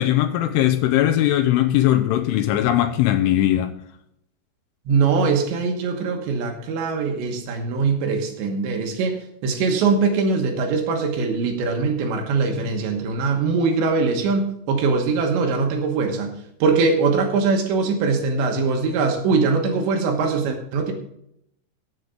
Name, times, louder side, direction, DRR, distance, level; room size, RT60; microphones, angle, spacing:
voice 1, 0.0-3.7, left 13 dB, 80° left, 7 dB, 3.1 m, -19 dB
voice 2, 4.9-16.3 16.6-20.9, right 4 dB, 70° right, 3 dB, 3.2 m, -22 dB
16.0 x 7.9 x 3.7 m, 0.75 s
omnidirectional pair, 5.9 m